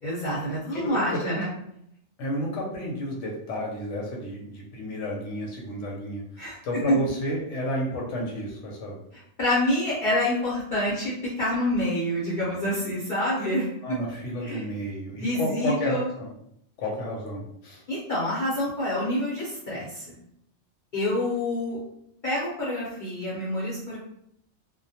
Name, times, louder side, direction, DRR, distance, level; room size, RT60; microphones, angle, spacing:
voice 1, 0.0-1.5 6.4-6.6 6.9-7.0 9.1-14.0 14.4-14.7 15.2-16.1 17.9-20.2 20.9-21.8 22.2-24.0, left 1 dB, 50° left, -8 dB, 0.8 m, -27 dB
voice 2, 0.7-1.4 2.2-6.2 6.6-9.0 13.8-16.3 16.8-17.8, equal, 85° left, -1 dB, 0.9 m, -31 dB
2.2 x 2.1 x 2.7 m, 0.73 s
omnidirectional pair, 1.2 m